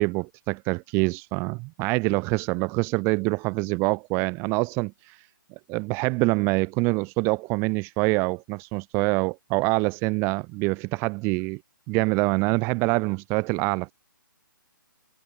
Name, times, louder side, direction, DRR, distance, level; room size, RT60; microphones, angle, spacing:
voice 1, 0.0-5.2 5.7-11.6 11.9-13.9, right 27 dB, 20° right, 2.2 m, -25 dB
hypercardioid pair, 155°, 12 cm